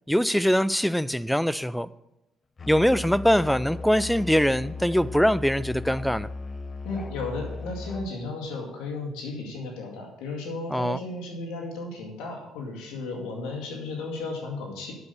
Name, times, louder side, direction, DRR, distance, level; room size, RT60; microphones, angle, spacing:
voice 1, 0.1-1.9 2.7-6.3 10.7-11.0, equal, ahead, 0.3 m, -23 dB
Musical instrument, 2.6-8.2, left 3 dB, 30° left, 0.8 m, -37 dB
voice 2, 6.8-14.9, left 3 dB, 90° left, 2.1 m, -34 dB
8.0 x 6.9 x 8.2 m
cardioid pair, 85°, 0 cm